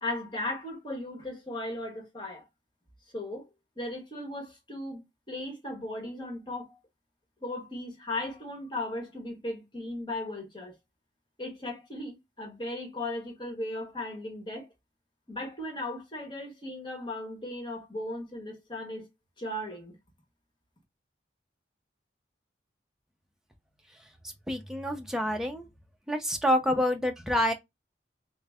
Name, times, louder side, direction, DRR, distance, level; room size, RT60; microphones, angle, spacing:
voice 1, 0.0-2.4 3.1-3.5 3.8-6.8 7.4-10.8 11.4-14.7 15.3-19.1 19.4-20.0, left 1 dB, 25° left, 1.3 m, -37 dB
voice 2, 24.5-25.7 26.1-27.5, equal, 5° right, 0.5 m, -27 dB
3.8 x 2.1 x 3.5 m
head